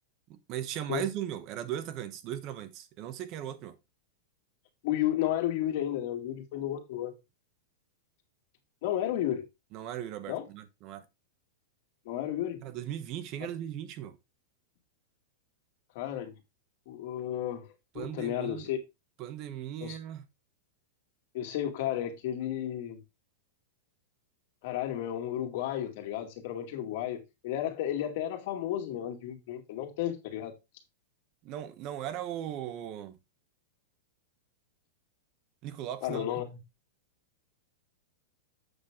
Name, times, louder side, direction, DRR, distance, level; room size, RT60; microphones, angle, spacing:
voice 1, 0.3-3.8 9.7-11.0 12.6-14.2 17.9-18.7 19.2-20.2 31.4-33.1 35.6-36.3, right 11 dB, 35° right, 1.1 m, -38 dB
voice 2, 4.8-7.1 8.8-9.5 10.3-10.4 12.1-12.6 15.9-16.4 16.9-17.7 17.9-18.8 19.8-20.0 21.3-23.0 24.6-30.5 36.0-36.6, left 12 dB, 50° left, 2.3 m, -33 dB
8.1 x 6.2 x 3.7 m
supercardioid pair, 165°, 0 cm